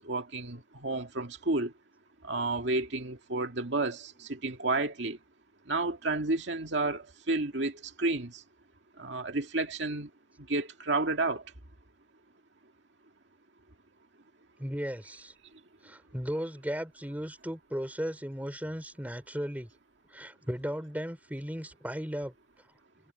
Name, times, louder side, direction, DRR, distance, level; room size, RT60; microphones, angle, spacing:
voice 1, 0.0-1.7 2.2-5.2 5.7-8.4 9.0-10.1 10.5-11.4, right 2 dB, 70° right, 2.1 m, -31 dB
voice 2, 14.6-15.3 15.8-19.7 20.1-22.3, equal, 10° right, 3.7 m, -36 dB
head